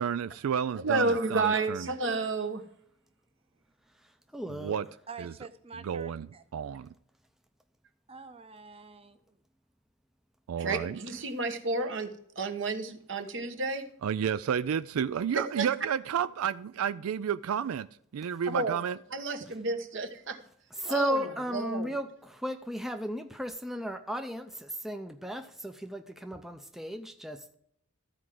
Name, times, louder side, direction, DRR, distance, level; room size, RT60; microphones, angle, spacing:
voice 1, 0.0-1.9 4.5-4.9 5.2-5.3 5.8-6.3 6.5-6.8 10.5-11.0 14.0-17.9 18.1-19.0, right 8 dB, 85° right, 0.4 m, -31 dB
voice 2, 0.8-2.6 10.6-13.9 15.3-15.8 18.4-18.8 19.1-20.4 20.8-22.0, right 3 dB, 60° right, 1.2 m, -31 dB
voice 3, 4.3-4.8 20.8-27.5, equal, ahead, 0.5 m, -35 dB
voice 4, 5.1-6.4 8.1-9.4, right 5 dB, 25° right, 0.9 m, -47 dB
14.0 x 4.8 x 7.6 m
head